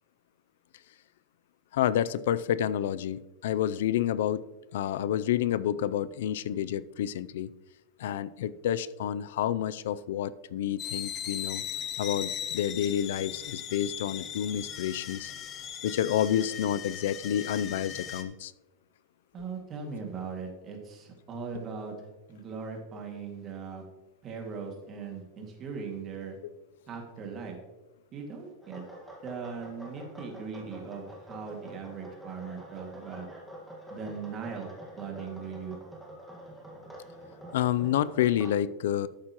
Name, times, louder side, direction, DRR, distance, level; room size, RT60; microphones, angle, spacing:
voice 1, 1.7-4.5 4.7-7.5 8.0-11.6 12.0-15.3 15.8-18.5 37.5-39.1, left 10 dB, 80° left, 17 dB, 0.4 m, -29 dB
sound 1, 10.8-18.2, left 9 dB, 30° left, 0.8 m, -38 dB
voice 2, 19.3-21.9 22.3-23.8 24.2-26.4 26.9-27.6 28.1-28.8 29.2-33.3 33.9-34.7 35.0-35.8, right 5 dB, 30° right, 1 dB, 2.1 m, -39 dB
sound 2, 28.6-38.5, right 1 dB, 5° right, 1.7 m, -47 dB
12.0 x 8.5 x 3.0 m, 1.1 s
supercardioid pair, 155°, 0 cm